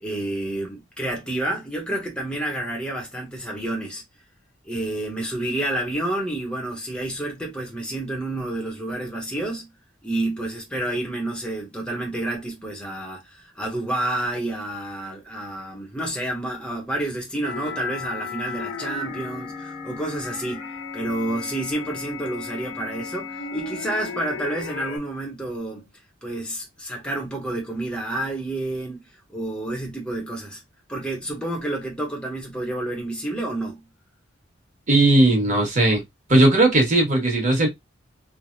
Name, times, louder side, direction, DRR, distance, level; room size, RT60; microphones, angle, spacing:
voice 1, 0.0-4.0 4.6-9.7 10.0-25.9 26.2-29.0 29.3-30.6 30.9-33.8, right 1 dB, 5° left, 0.7 m, -29 dB
sound 1, 17.4-25.0, left 5 dB, 85° left, 1.0 m, -35 dB
voice 2, 34.9-36.0 36.3-37.7, right 2 dB, 40° right, 1.3 m, -17 dB
3.2 x 2.1 x 2.6 m
head